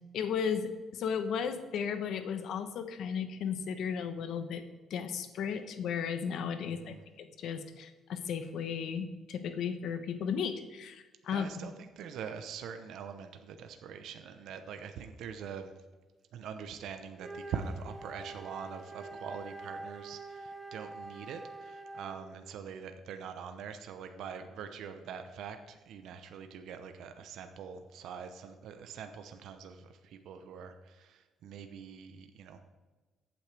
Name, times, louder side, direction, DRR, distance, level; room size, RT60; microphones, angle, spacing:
voice 1, 0.1-4.6 4.9-11.5, left 7 dB, 70° left, 9 dB, 1.1 m, -35 dB
voice 2, 6.6-7.0 11.3-15.7 16.3-32.6, right 7 dB, 75° right, 7 dB, 0.9 m, -43 dB
Wind instrument woodwind instrument, 17.1-22.4, right 2 dB, 20° right, 0.9 m, -46 dB
15.0 x 8.9 x 3.5 m, 1.3 s
cardioid pair, 120°, 0 cm